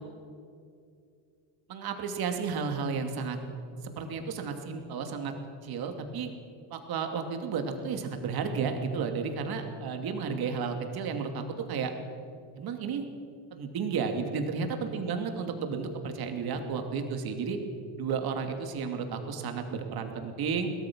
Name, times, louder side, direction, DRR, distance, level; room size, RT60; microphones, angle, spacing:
voice 1, 1.7-3.4 3.8-5.3 5.6-6.3 6.7-11.4 11.7-11.9 12.5-13.0 13.5-17.6 18.0-20.7, right 5 dB, 50° right, 5 dB, 2.7 m, -32 dB
23.0 x 18.0 x 6.3 m, 2.5 s
cardioid pair, 135°, 48 cm